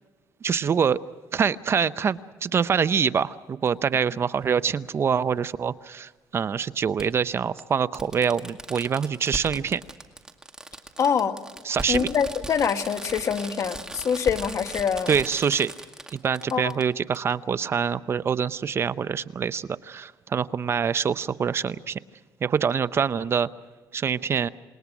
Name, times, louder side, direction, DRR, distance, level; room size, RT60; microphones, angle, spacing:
voice 1, 0.4-1.0 1.3-9.8 11.6-12.1 15.1-15.7 16.1-22.0 22.4-23.5 23.9-24.5, right 7 dB, 40° right, 15 dB, 0.6 m, -25 dB
Fireworks, 3.7-3.8 5.3-5.4 7.0-7.1 7.6-7.7 7.9-16.8 17.1-17.2, right 1 dB, 10° right, 2.2 m, -38 dB
voice 2, 11.0-11.4 11.9-15.1 16.5-16.7, left 7 dB, 55° left, 7 dB, 1.6 m, -25 dB
27.5 x 21.0 x 6.1 m, 1.3 s
cardioid pair, 110°, 6 cm